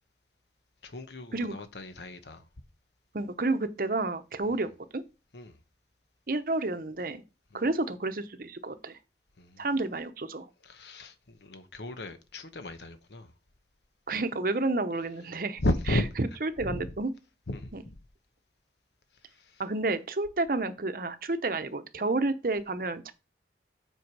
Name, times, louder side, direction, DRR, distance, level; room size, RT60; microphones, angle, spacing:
voice 1, 0.8-2.4 4.5-4.6 5.3-5.6 7.5-7.6 9.4-9.7 10.6-13.3 15.6-16.0 16.6-16.9 17.5-17.9 19.3-19.6, left 1 dB, 75° left, 1.1 m, -34 dB
voice 2, 3.1-5.0 6.3-7.2 7.5-9.0 9.6-10.5 14.1-15.6 16.4-17.1 17.7-17.8 19.6-23.1, right 2 dB, 55° right, 0.8 m, -30 dB
7.9 x 4.7 x 4.7 m
head